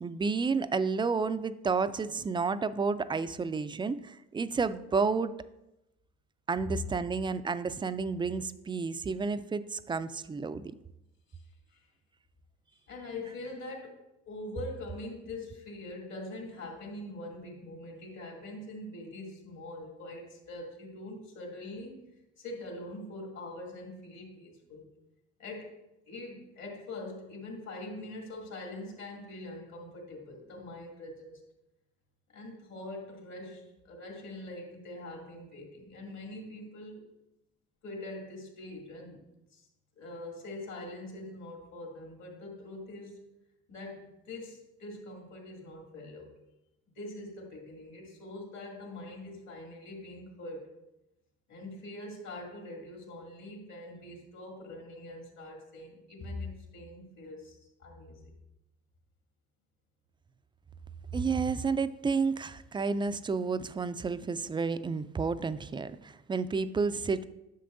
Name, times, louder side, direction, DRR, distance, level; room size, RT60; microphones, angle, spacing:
voice 1, 0.0-5.3 6.5-10.7 61.1-67.3, right 4 dB, 15° right, 13 dB, 0.3 m, -31 dB
voice 2, 12.9-14.0 14.3-24.9 25.4-25.8 26.1-31.4 32.3-37.1 37.8-39.2 39.5-39.7 40.0-43.2 43.7-46.3 47.0-50.7 51.5-58.3, left 2 dB, 65° left, 0 dB, 2.5 m, -43 dB
10.0 x 6.7 x 2.6 m, 0.91 s
supercardioid pair, 80°, 30 cm